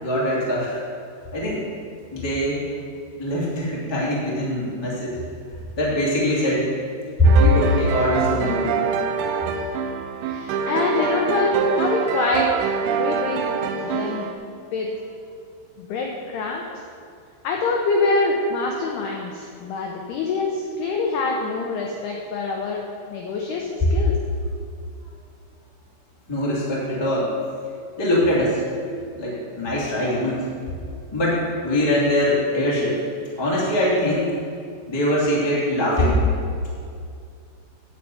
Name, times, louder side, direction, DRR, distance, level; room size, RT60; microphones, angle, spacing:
voice 1, 0.0-0.8 1.3-1.6 2.1-2.6 3.2-5.2 5.7-6.6 7.2-8.8 26.3-27.3 28.0-28.6 29.1-30.4 31.1-33.0 33.3-34.3 34.9-36.2, left 1 dB, 15° left, -6 dB, 0.9 m, -22 dB
sound 1, 7.2-14.3, right 6 dB, 80° right, 2.6 m, -25 dB
voice 2, 10.2-12.6 12.9-14.3 14.7-14.9 15.8-16.7 17.4-22.8 23.1-24.2, left 3 dB, 85° left, 0 dB, 2.3 m, -25 dB
11.0 x 5.6 x 7.8 m, 2.3 s
omnidirectional pair, 5.8 m